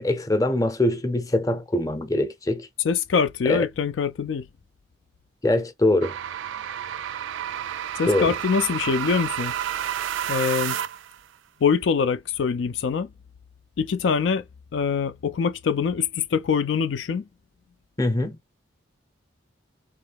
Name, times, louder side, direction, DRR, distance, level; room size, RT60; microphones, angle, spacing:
voice 1, 0.0-2.7 3.5-3.6 5.4-6.2 8.1-8.3 18.0-18.4, left 1 dB, 15° left, 0.6 m, -23 dB
voice 2, 2.8-4.5 8.0-9.5 10.3-10.8 11.6-13.1 13.8-14.4 14.7-17.2, left 6 dB, 70° left, 0.4 m, -24 dB
sound 1, 6.0-11.2, right 10 dB, 75° right, 0.3 m, -30 dB
3.8 x 3.1 x 3.4 m
head